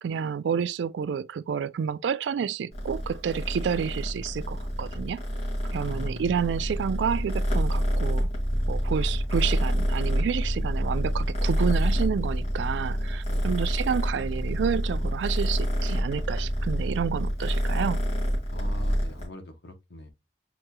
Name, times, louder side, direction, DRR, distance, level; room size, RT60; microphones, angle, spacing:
voice 1, 0.0-5.2 5.7-8.3 8.7-18.0, right 7 dB, 70° right, 0.3 m, -29 dB
Purr, 2.7-19.3, equal, 40° left, 2.0 m, -27 dB
voice 2, 5.7-6.3 13.3-13.6 18.5-20.1, left 1 dB, 70° left, 0.8 m, -43 dB
7.6 x 3.0 x 2.2 m
head